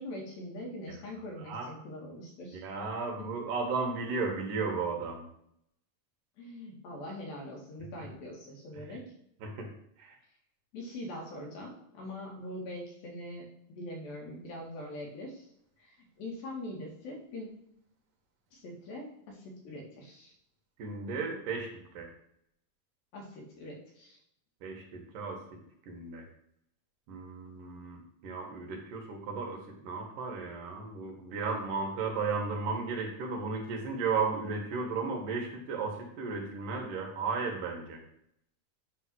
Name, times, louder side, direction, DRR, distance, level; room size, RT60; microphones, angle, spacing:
voice 1, 0.0-2.6 3.2-3.3 6.4-9.1 10.7-15.5 15.8-17.5 18.5-20.3 23.1-24.2, left 1 dB, 80° left, -1 dB, 3.8 m, -43 dB
voice 2, 2.5-5.2 8.9-9.0 9.4-9.7 10.0-10.1 20.8-21.7 21.9-22.1 24.6-25.4 25.9-26.2 27.1-29.6 29.8-38.0, right 4 dB, 70° right, 2 dB, 2.9 m, -34 dB
8.9 x 3.6 x 6.2 m, 0.73 s
omnidirectional pair, 4.1 m